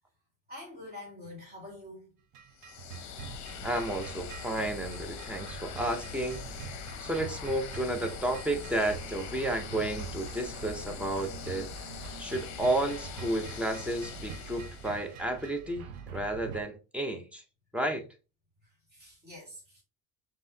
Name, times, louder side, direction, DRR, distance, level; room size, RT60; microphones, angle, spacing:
voice 1, 0.5-2.1 18.9-19.8, left 1 dB, 25° right, 2.0 m, -46 dB
sound 1, 2.3-16.6, right 8 dB, 65° right, 0.7 m, -45 dB
sound 2, 2.5-15.2, left 8 dB, 55° left, 0.7 m, -43 dB
voice 2, 3.6-6.5 7.0-11.7 12.2-17.4 17.7-18.0, right 1 dB, 5° right, 0.6 m, -32 dB
5.3 x 2.8 x 2.7 m
cardioid pair, 160°, 35 cm